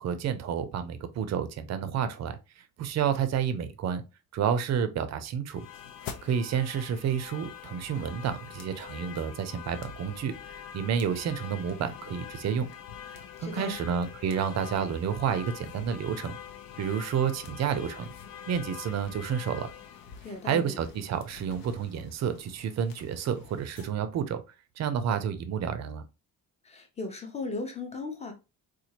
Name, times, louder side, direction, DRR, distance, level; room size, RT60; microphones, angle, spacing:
voice 1, 0.0-4.0 4.3-5.6 6.2-10.3 10.7-12.7 13.4-16.4 16.8-18.1 18.5-19.7 20.4-24.4 24.8-26.0, right 7 dB, 50° right, 0.5 m, -30 dB
sound 1, 5.5-23.9, left 8 dB, 70° left, 0.7 m, -45 dB
voice 2, 13.4-13.8 20.2-20.8 26.6-28.3, left 3 dB, 20° left, 0.7 m, -37 dB
4.2 x 2.4 x 2.8 m
cardioid pair, 175°, 36 cm